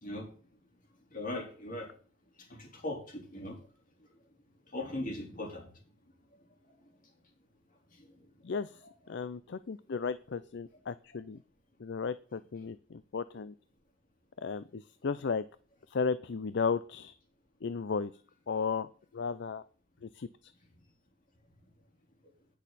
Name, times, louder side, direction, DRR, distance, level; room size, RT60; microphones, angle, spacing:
voice 1, 1.1-1.9 2.6-3.6 4.7-5.6, left 1 dB, 45° left, 0 dB, 4.0 m, -38 dB
voice 2, 8.4-8.8 9.1-11.4 11.8-13.5 14.4-15.4 15.9-17.1 17.6-18.1 18.5-18.9 19.1-19.6 20.0-20.5, left 5 dB, 65° left, 14 dB, 0.5 m, -34 dB
18.0 x 6.4 x 4.2 m, 0.42 s
head